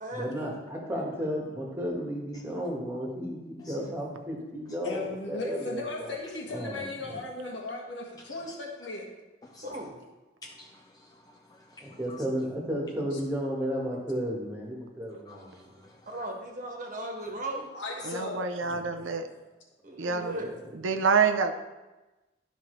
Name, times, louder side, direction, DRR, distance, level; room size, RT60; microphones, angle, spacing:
voice 1, 0.1-6.1 6.5-7.2 11.8-15.8 20.3-20.5, equal, 15° right, -2 dB, 1.6 m, -33 dB
voice 2, 4.8-9.1 13.1-13.2 17.7-18.5, left 2 dB, 70° left, -2 dB, 1.8 m, -37 dB
voice 3, 9.6-9.9 16.1-17.7 19.8-20.5, right 1 dB, 40° right, 1 dB, 1.3 m, -36 dB
voice 4, 10.4-11.2 11.5-12.2 15.3-16.0, left 2 dB, 20° left, 1 dB, 0.4 m, -51 dB
voice 5, 18.0-19.3 20.0-20.4 20.7-21.5, right 5 dB, 85° right, 6 dB, 0.7 m, -26 dB
12.0 x 5.6 x 3.3 m, 1.1 s
head